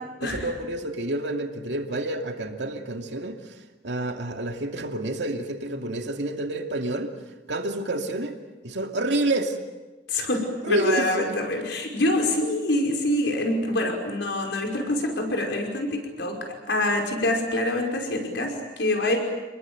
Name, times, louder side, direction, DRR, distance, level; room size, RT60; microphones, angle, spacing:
voice 1, 0.2-3.6 3.8-7.1 7.5-8.4 8.6-9.6 10.6-11.4, right 1 dB, 80° right, 4 dB, 2.6 m, -28 dB
voice 2, 10.1-10.4 10.7-16.4 16.7-19.2, left 1 dB, 80° left, 2 dB, 5.5 m, -25 dB
29.5 x 21.0 x 7.9 m, 1.2 s
head